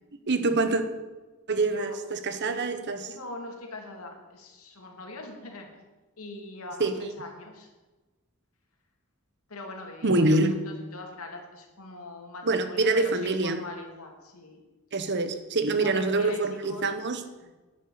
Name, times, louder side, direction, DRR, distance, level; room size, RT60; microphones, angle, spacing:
voice 1, 0.3-0.8 1.5-3.1 6.8-6.9 10.0-10.5 12.4-13.6 14.9-17.2, right 2 dB, 55° right, 1.1 m, -25 dB
voice 2, 3.2-5.7 6.2-7.7 9.5-14.6 15.7-16.9 17.4-17.5, left 2 dB, 80° left, 2.7 m, -42 dB
11.0 x 10.0 x 6.7 m
head